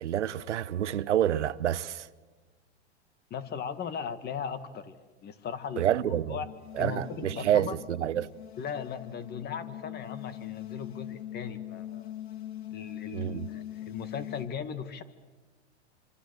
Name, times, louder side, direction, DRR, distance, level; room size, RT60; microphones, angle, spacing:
voice 1, 0.0-2.1 5.8-6.4 6.7-8.3 13.1-13.5, right 11 dB, 85° right, 1.0 m, -28 dB
voice 2, 3.3-6.5 6.8-7.8 8.6-12.1 12.7-15.0, left 7 dB, 30° left, 1.9 m, -38 dB
sound 1, 6.3-14.5, left 12 dB, 65° left, 2.3 m, -42 dB
26.0 x 26.0 x 8.1 m
hypercardioid pair, 120°, 34 cm